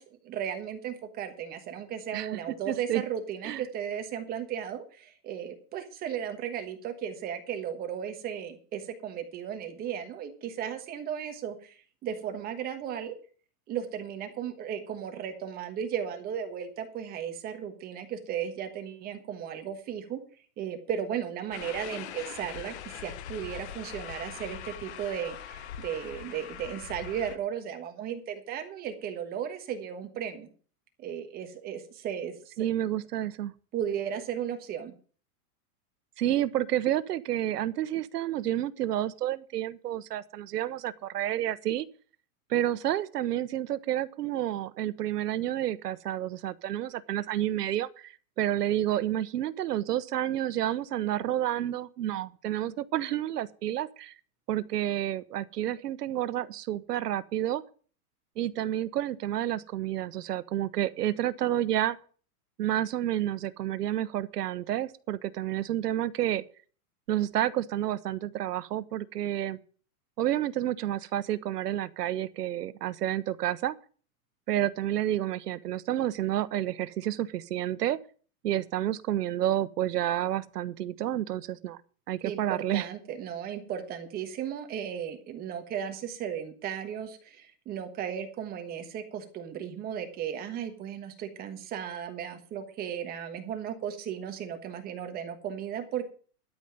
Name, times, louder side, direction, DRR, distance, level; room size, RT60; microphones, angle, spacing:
voice 1, 0.0-13.1 13.7-20.2 20.6-30.5 31.0-32.3 33.7-34.9 82.2-96.0, right 8 dB, 20° right, 1.3 m, -35 dB
voice 2, 2.1-3.0 3.4-3.6 32.6-33.5 36.2-41.9 42.5-54.1 54.5-57.6 58.4-62.0 62.6-66.4 67.1-69.6 70.2-73.8 74.5-78.0 78.4-81.8 82.1-82.9, right 12 dB, 90° right, 1.0 m, -30 dB
sound 1, 21.5-27.4, left 10 dB, 45° left, 1.1 m, -42 dB
12.5 x 5.5 x 8.9 m
supercardioid pair, 160°, 46 cm